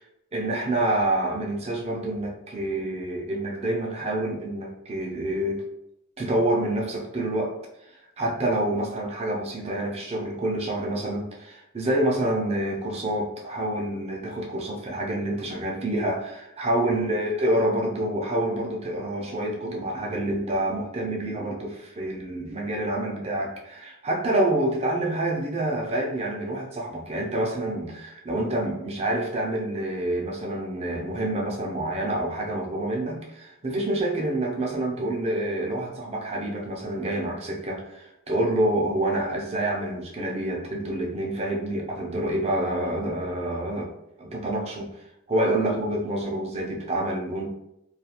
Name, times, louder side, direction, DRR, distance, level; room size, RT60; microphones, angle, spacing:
voice 1, 0.3-5.6 6.2-7.5 8.2-43.9 44.2-44.9 45.3-47.5, right 1 dB, 30° right, -1 dB, 0.5 m, -27 dB
2.4 x 2.3 x 2.8 m, 0.82 s
head